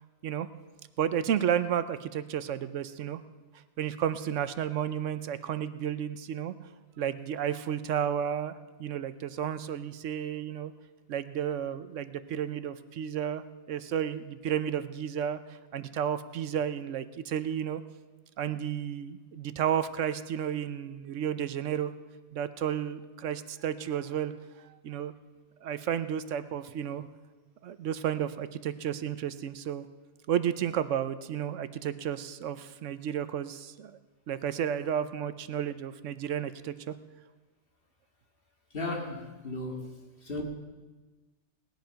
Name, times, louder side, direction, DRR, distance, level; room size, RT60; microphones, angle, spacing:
voice 1, 1.0-3.2 3.8-6.5 7.0-10.7 11.1-15.4 15.7-17.8 18.4-21.9 22.3-24.3 24.6-25.1 25.6-27.1 27.6-29.9 30.3-34.0 34.3-36.9, right 9 dB, 85° right, 13 dB, 1.1 m, -32 dB
voice 2, 38.7-39.9 40.2-40.4, left 2 dB, 50° left, 1 dB, 2.2 m, -35 dB
18.5 x 10.5 x 5.7 m, 1.3 s
omnidirectional pair, 1.2 m